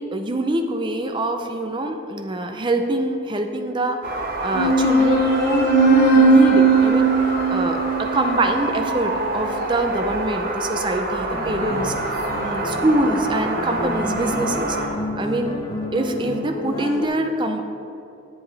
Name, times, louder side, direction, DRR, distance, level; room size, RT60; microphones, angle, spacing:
voice 1, 0.0-4.0 4.4-7.1 7.5-11.9 12.4-14.8 15.2-15.5 15.9-17.6, right 1 dB, 20° right, 5 dB, 0.5 m, -24 dB
sound 1, 4.0-14.9, right 2 dB, 45° right, 0.8 m, -27 dB
sound 2, 4.5-9.5, right 3 dB, 50° left, 1.1 m, -18 dB
sound 3, 11.3-17.1, left 2 dB, 20° left, 0.7 m, -30 dB
10.5 x 7.7 x 3.3 m, 2.8 s
head